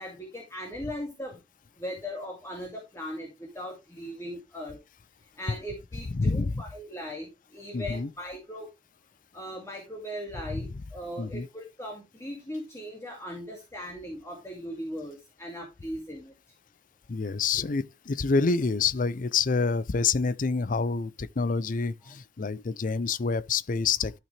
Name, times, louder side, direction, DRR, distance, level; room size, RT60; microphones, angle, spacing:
voice 1, 0.0-1.4 1.8-4.8 5.4-8.7 9.3-16.3 22.0-22.1, equal, 15° left, 2.4 m, -39 dB
voice 2, 6.1-6.6 7.7-8.1 10.5-10.7 11.2-11.5 17.1-24.1, left 4 dB, 45° left, 0.5 m, -27 dB
12.5 x 5.9 x 3.3 m
head